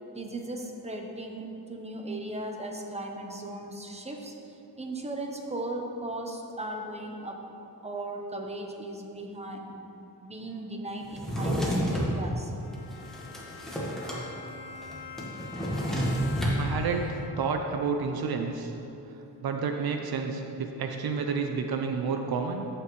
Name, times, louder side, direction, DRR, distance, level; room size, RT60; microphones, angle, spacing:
voice 1, 0.1-7.4 7.8-12.5, right 1 dB, 15° right, 2 dB, 0.8 m, -37 dB
Drawer open or close, 11.1-12.1 12.7-14.2 14.5-14.6 14.8-16.6, equal, ahead, 1.4 m, -29 dB
Bowed string instrument, 12.6-17.6, left 6 dB, 55° left, 0.8 m, -45 dB
voice 2, 16.6-18.7 19.4-22.7, right 5 dB, 75° right, 4 dB, 0.6 m, -30 dB
14.5 x 5.9 x 3.1 m, 2.9 s
wide cardioid pair, 155°, 37 cm